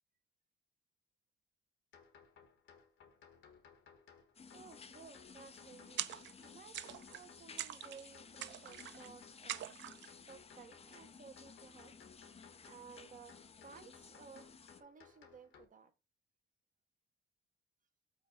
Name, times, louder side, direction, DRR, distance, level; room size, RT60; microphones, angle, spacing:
sound 1, 1.9-15.7, left 6 dB, 70° left, 1.3 m, -62 dB
sound 2, 4.4-14.8, left 5 dB, 30° left, 0.6 m, -57 dB
voice 1, 4.5-9.8 10.3-12.0 12.6-14.5 14.8-15.9, right 6 dB, 40° right, 1.2 m, -57 dB
sound 3, 6.0-6.5 6.7-7.2 7.6-8.1 8.4-9.1 9.5-10.1, right 13 dB, 70° right, 0.4 m, -43 dB
5.6 x 4.5 x 4.2 m
cardioid pair, 90°, 20 cm